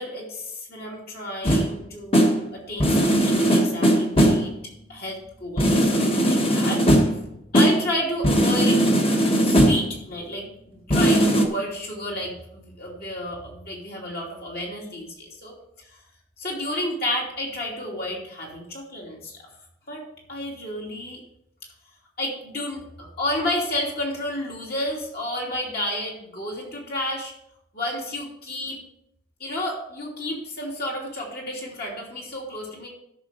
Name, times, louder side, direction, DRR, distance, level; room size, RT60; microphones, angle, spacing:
voice 1, 0.0-4.5 4.9-6.8 7.5-8.8 9.4-16.0 16.4-19.4 19.9-20.0 20.3-21.2 22.2-27.3 27.7-28.8 29.4-32.9, left 1 dB, 55° left, -3 dB, 3.0 m, -31 dB
sound 1, 1.4-1.8 2.1-2.5 2.8-4.6 5.6-7.3 7.5-7.9 8.2-10.0 10.9-11.4, equal, 30° left, 1.3 m, -19 dB
13.5 x 6.1 x 5.1 m, 0.77 s
head